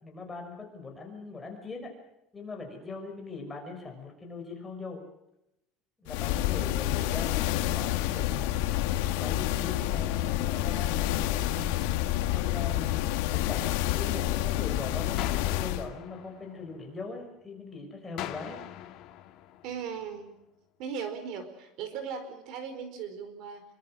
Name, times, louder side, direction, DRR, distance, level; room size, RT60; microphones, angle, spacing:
voice 1, 0.0-1.9 2.3-5.0 6.0-8.6 9.2-11.8 12.3-18.6, left 3 dB, 10° left, 1 dB, 5.7 m, -41 dB
sound 1, 6.1-15.9, left 14 dB, 80° left, 1.9 m, -28 dB
sound 2, 15.2-17.2 18.2-20.2, left 12 dB, 50° left, 2.2 m, -42 dB
voice 2, 19.6-20.3 20.8-23.6, right 6 dB, 55° right, 10 dB, 4.5 m, -38 dB
27.0 x 24.0 x 6.4 m, 0.85 s
cardioid pair, 165°, 0 cm